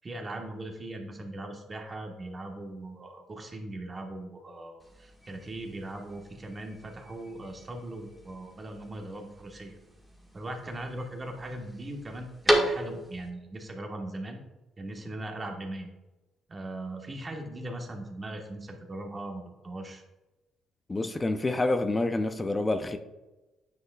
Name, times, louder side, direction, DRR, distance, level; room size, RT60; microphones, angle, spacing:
voice 1, 0.0-9.8 10.3-14.4 14.8-15.9 16.5-20.0, right 1 dB, 30° right, 1.3 m, -39 dB
sound 1, 4.8-13.3, equal, ahead, 1.9 m, -35 dB
voice 2, 20.9-23.0, left 2 dB, 25° left, 0.5 m, -27 dB
9.5 x 5.6 x 2.4 m
supercardioid pair, 75°, 0 cm